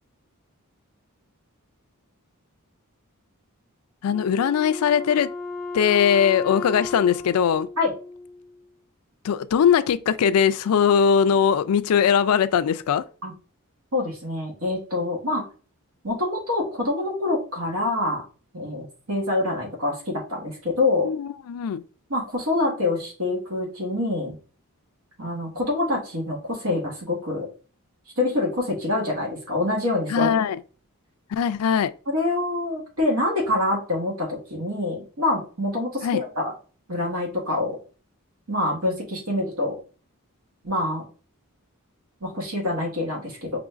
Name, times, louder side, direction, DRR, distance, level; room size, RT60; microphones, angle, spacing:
voice 1, 4.0-5.3 5.7-7.7 9.2-13.0 21.0-21.8 30.1-30.6 31.3-31.9 36.0-36.2, left 7 dB, 80° left, 0.3 m, -20 dB
Wind instrument woodwind instrument, 4.1-8.6, left 3 dB, 10° left, 0.4 m, -35 dB
voice 2, 13.9-15.4 16.0-18.2 18.5-21.1 22.1-24.3 25.2-27.5 28.2-30.3 32.1-36.5 36.9-37.8 38.5-39.8 40.6-41.0 42.2-43.6, left 2 dB, 75° right, 1.7 m, -26 dB
5.0 x 3.0 x 2.4 m
head